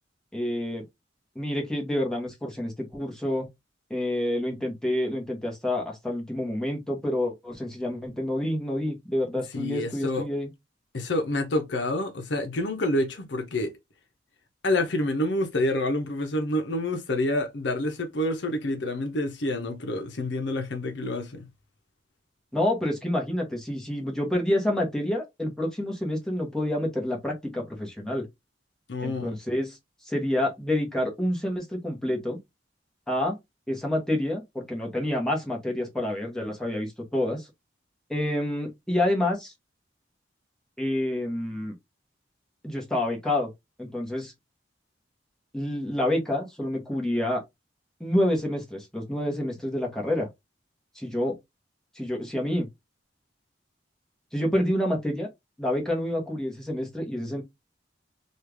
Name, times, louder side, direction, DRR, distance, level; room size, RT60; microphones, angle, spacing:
voice 1, 0.3-0.8 1.3-3.5 3.9-10.5 22.5-28.3 29.0-29.8 30.1-32.4 33.1-33.3 33.7-37.5 38.1-39.5 40.8-41.7 42.6-43.5 43.8-44.3 45.5-47.4 48.0-50.3 50.9-51.4 51.9-52.7 54.3-55.3 55.6-57.4, left 1 dB, 5° left, 1.0 m, -28 dB
voice 2, 9.5-10.2 10.9-13.7 14.6-21.5 28.9-29.3, left 1 dB, 70° left, 0.7 m, -28 dB
3.2 x 2.4 x 3.4 m
head